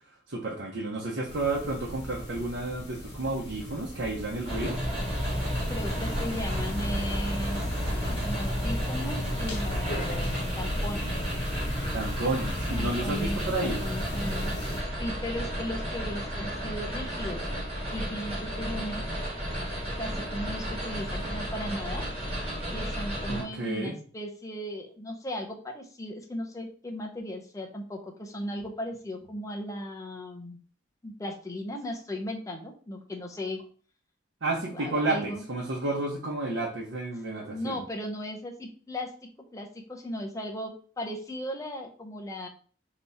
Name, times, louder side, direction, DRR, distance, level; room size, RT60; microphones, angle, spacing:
voice 1, 0.3-4.8 11.9-13.8 23.3-24.0 34.4-37.8, right 2 dB, 90° right, -3 dB, 0.9 m, -31 dB
sound 1, 1.3-14.8, equal, 60° left, 1.1 m, -35 dB
sound 2, 4.5-23.4, equal, 30° right, 2.0 m, -33 dB
voice 2, 5.7-7.6 7.9-11.1 12.7-14.7 15.0-19.0 20.0-22.0 22.7-30.6 31.0-33.6 34.6-35.4 37.5-39.1 39.5-42.5, equal, 15° left, 2 dB, 0.6 m, -37 dB
3.5 x 2.9 x 4.0 m, 0.43 s
head